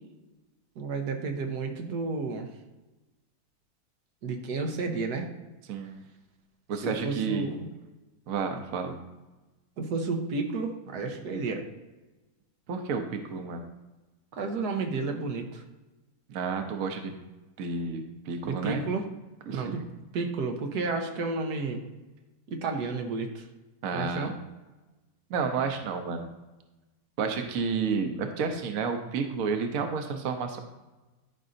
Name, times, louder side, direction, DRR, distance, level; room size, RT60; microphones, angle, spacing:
voice 1, 0.8-2.5 4.2-5.3 6.8-7.7 9.8-11.6 14.3-15.6 18.4-19.0 19.5-19.8 20.1-21.8 22.5-23.4 23.9-24.3, right 4 dB, 85° right, 4 dB, 1.4 m, -31 dB
voice 2, 5.7-6.0 6.7-7.5 8.3-9.0 12.7-13.7 16.3-17.1 17.6-18.8 19.5-19.8 23.8-24.3 25.3-26.3 27.2-30.6, right 5 dB, 65° right, 6 dB, 1.1 m, -31 dB
11.5 x 5.3 x 2.6 m, 1.1 s
omnidirectional pair, 1.7 m